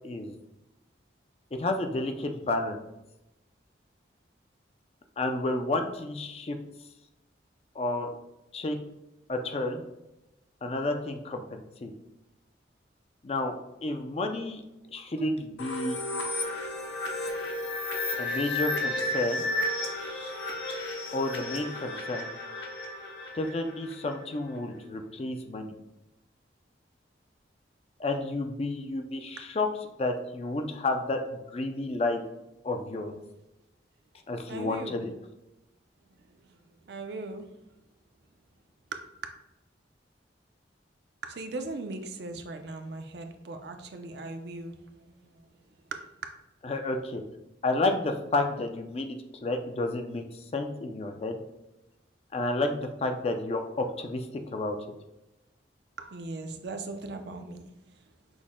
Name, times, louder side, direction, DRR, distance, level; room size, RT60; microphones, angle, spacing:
voice 1, 1.5-2.8 5.2-6.6 7.8-8.1 8.5-8.8 9.3-9.8 10.6-11.9 13.2-13.5 13.8-14.6 14.9-16.0 18.2-19.5 21.1-22.3 23.3-25.7 28.0-29.7 30.0-32.2 32.6-33.1 34.3-35.1 46.6-47.2 47.6-51.4 52.3-54.7, left 2 dB, 35° left, 5 dB, 0.4 m, -31 dB
sound 1, 15.6-24.2, left 2 dB, 80° left, 0.8 m, -33 dB
voice 2, 34.5-35.1 36.3-36.6 36.8-37.5 38.9-39.0 41.2-45.5 45.9-46.0 56.0-57.7, right 3 dB, 65° right, 6 dB, 0.5 m, -39 dB
6.1 x 2.1 x 3.6 m, 0.94 s
head